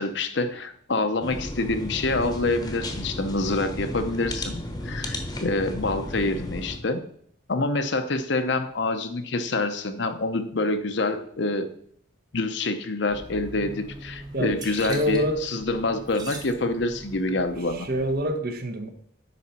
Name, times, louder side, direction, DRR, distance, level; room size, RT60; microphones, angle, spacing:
voice 1, 0.0-7.0 7.5-11.7 12.3-17.9, left 2 dB, 60° left, 9 dB, 0.7 m, -26 dB
sound 1, 1.2-6.8, left 1 dB, 20° left, 1.0 m, -34 dB
sound 2, 13.1-18.3, right 1 dB, 20° right, 1.0 m, -41 dB
voice 2, 14.3-15.5 17.6-18.9, equal, 50° right, 7 dB, 0.9 m, -27 dB
8.3 x 5.6 x 4.3 m, 0.63 s
head